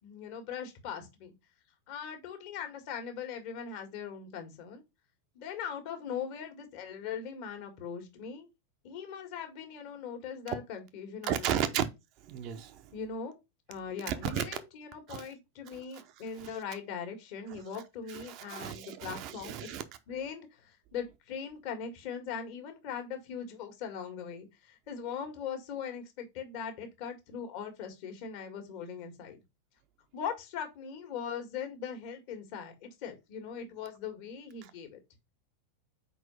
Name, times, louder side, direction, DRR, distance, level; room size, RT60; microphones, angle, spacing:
voice 1, 0.0-1.3 1.9-4.8 5.3-8.5 8.8-11.6 12.9-13.4 13.7-19.7 20.1-29.4 30.1-35.0, left 7 dB, 45° left, 1.7 m, -40 dB
voice 2, 11.3-11.9 12.2-12.9 14.1-14.4 15.1-15.3 15.7-15.8 16.4-16.5 17.5-17.6 18.1-19.8 34.6-34.7, right 10 dB, 40° right, 0.8 m, -34 dB
4.6 x 4.2 x 5.3 m
figure-of-eight pair, 90°, 0 cm